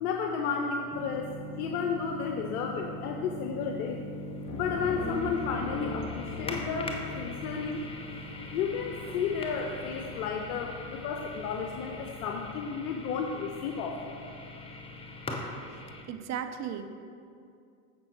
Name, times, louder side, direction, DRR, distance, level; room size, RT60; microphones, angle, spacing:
voice 1, 0.0-4.1 4.5-7.8 8.5-14.2, left 6 dB, 70° left, 3 dB, 0.7 m, -32 dB
sound 1, 0.9-16.0, left 1 dB, 10° left, 0.8 m, -41 dB
sound 2, 4.5-12.4, left 4 dB, 45° left, 1.6 m, -41 dB
voice 2, 16.1-16.9, right 8 dB, 35° right, 8 dB, 0.6 m, -35 dB
7.6 x 6.0 x 4.4 m, 2.4 s
hypercardioid pair, 95°, 46 cm